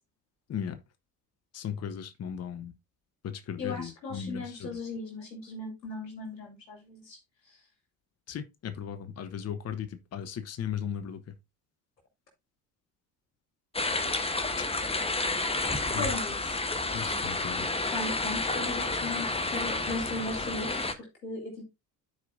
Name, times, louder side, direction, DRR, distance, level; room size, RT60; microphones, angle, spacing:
voice 1, 1.5-2.7 3.2-4.7 8.3-11.2 15.9-16.1 16.9-17.7, left 8 dB, 30° left, 0.9 m, -36 dB
voice 2, 3.6-7.2 7.5-7.6 15.9-16.6 17.9-21.6, left 2 dB, 85° left, 2.9 m, -37 dB
sound 1, 13.7-20.9, left 3 dB, 10° left, 1.1 m, -30 dB
13.5 x 4.7 x 2.6 m
figure-of-eight pair, 60°, 49 cm